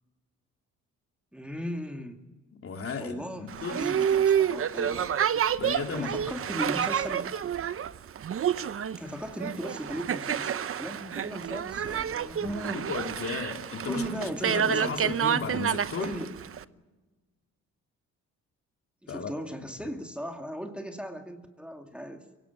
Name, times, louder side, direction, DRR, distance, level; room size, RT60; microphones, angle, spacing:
voice 1, 1.3-2.2 3.0-5.1 5.9-7.3 9.0-12.8 13.9-15.1 16.0-16.4 19.0-22.2, equal, 5° right, 4 dB, 2.4 m, -37 dB
voice 2, 2.6-4.0 5.5-6.2 12.4-16.1 19.1-19.3 19.8-19.9, left 5 dB, 50° left, 4 dB, 2.8 m, -35 dB
Boat Water vehicle, 3.5-16.6, right 9 dB, 45° right, 0.9 m, -29 dB
23.5 x 18.0 x 9.5 m, 1.2 s
cardioid pair, 90°, 30 cm